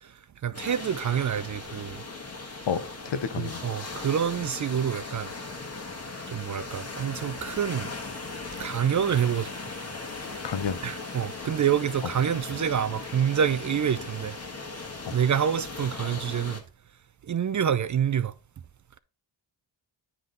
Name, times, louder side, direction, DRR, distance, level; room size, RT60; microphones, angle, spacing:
voice 1, 0.0-2.0 3.4-5.3 6.3-7.9 8.6-9.5 10.8-14.4 15.1-16.6 17.2-18.3, right 8 dB, 40° right, 0.4 m, -27 dB
sound 1, 0.5-16.6, left 3 dB, 30° left, 1.4 m, -38 dB
voice 2, 2.7-3.9 10.4-10.8 15.1-15.2, left 6 dB, 65° left, 0.9 m, -31 dB
9.4 x 3.7 x 3.8 m
cardioid pair, 70°, 46 cm